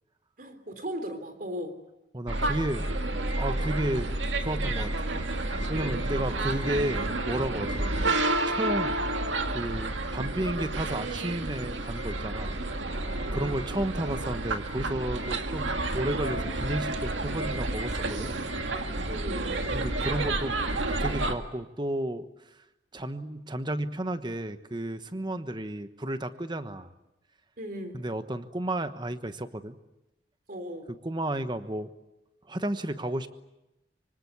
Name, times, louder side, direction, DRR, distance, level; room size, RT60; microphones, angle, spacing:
voice 1, 0.4-1.7 6.3-7.0 7.8-8.0 13.2-13.6 19.1-19.5 27.6-28.0 30.5-30.9, equal, 50° right, 8 dB, 3.4 m, -38 dB
voice 2, 2.1-2.9 3.4-4.1 4.4-5.2 5.7-7.8 8.5-9.0 9.5-12.6 13.3-18.3 19.7-20.6 21.0-22.3 22.9-26.9 27.9-29.8 30.9-31.9 32.5-33.3, right 1 dB, 25° right, 10 dB, 1.2 m, -32 dB
sound 1, 2.3-21.3, right 2 dB, 90° right, 2.1 m, -30 dB
25.0 x 25.0 x 8.3 m, 0.94 s
head